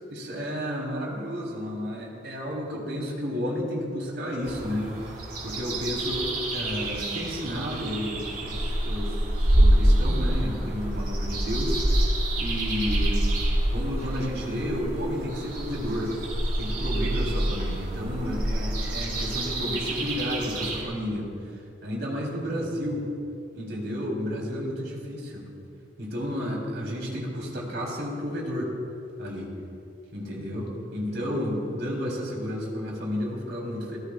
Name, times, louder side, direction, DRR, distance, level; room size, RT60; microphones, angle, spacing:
voice 1, 0.1-5.2 5.4-13.2 13.7-16.1 16.6-23.1 23.5-25.5 26.0-28.7 29.2-29.5 30.1-34.0, equal, 65° right, -3 dB, 4.0 m, -32 dB
sound 1, 4.4-20.8, right 1 dB, 50° right, 4.3 m, -26 dB
24.5 x 18.0 x 2.6 m, 2.6 s
head